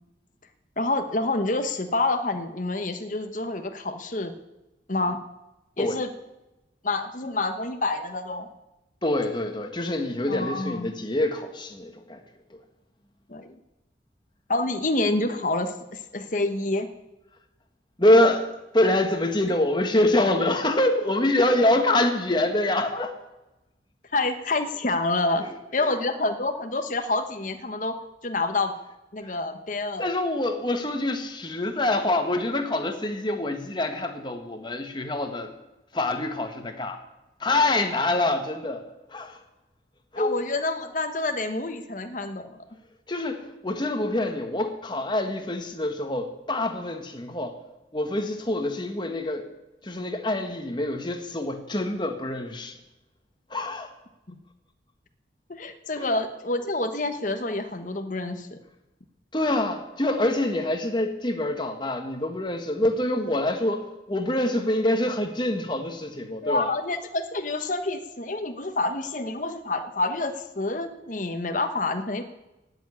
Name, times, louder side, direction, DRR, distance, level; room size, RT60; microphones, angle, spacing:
voice 1, 0.8-4.3 4.9-5.2 5.8-6.1 6.8-8.5 10.3-10.9 13.3-13.6 14.5-16.9 21.4-21.5 24.1-25.4 25.7-28.7 29.1-30.1 40.1-42.6 55.5-58.6 66.4-72.2, left 2 dB, 45° left, 7 dB, 1.2 m, -28 dB
voice 2, 9.0-12.2 12.5-12.6 18.0-18.5 18.7-23.2 25.8-25.9 29.2-29.3 30.0-35.5 35.9-37.0 37.4-38.8 39.1-39.4 40.1-40.4 43.1-47.6 47.9-49.5 49.8-52.8 53.5-53.9 56.0-56.1 59.3-66.7, left 1 dB, 25° left, 6 dB, 1.6 m, -25 dB
16.5 x 7.3 x 9.9 m, 0.98 s
head